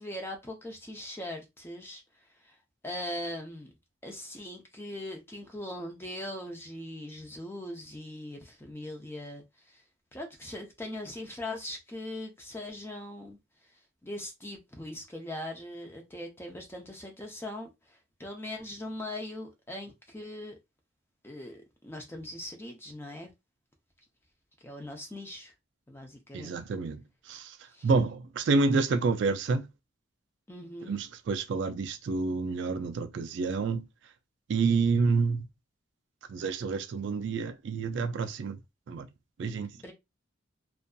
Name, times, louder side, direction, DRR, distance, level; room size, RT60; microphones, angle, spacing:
voice 1, 0.0-2.0 2.8-3.7 4.0-9.4 10.1-13.4 14.0-17.7 18.2-20.6 21.2-23.3 24.6-25.5 25.9-26.6 27.7-27.9 30.5-31.0 39.7-39.9, left 1 dB, 10° left, 0.5 m, -40 dB
voice 2, 26.3-27.6 27.8-29.7 30.9-33.9 34.5-35.5 36.3-38.6 38.9-39.1 39.4-39.7, right 4 dB, 60° right, 0.3 m, -28 dB
2.6 x 2.3 x 2.2 m
head